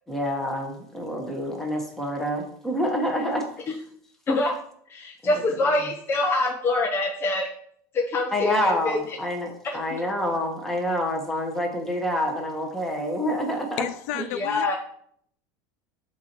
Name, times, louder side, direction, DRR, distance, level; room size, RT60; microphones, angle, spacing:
voice 1, 0.1-3.5 5.2-5.4 8.3-13.8 14.1-14.3, equal, 5° left, 1 dB, 1.4 m, -27 dB
voice 2, 4.9-7.5 7.9-9.0 9.6-9.8 14.3-14.8, left 2 dB, 30° left, 1 dB, 0.8 m, -25 dB
voice 3, 13.8-14.8, left 11 dB, 70° left, 13 dB, 0.5 m, -31 dB
7.2 x 2.9 x 6.0 m, 0.66 s
supercardioid pair, 130°, 8 cm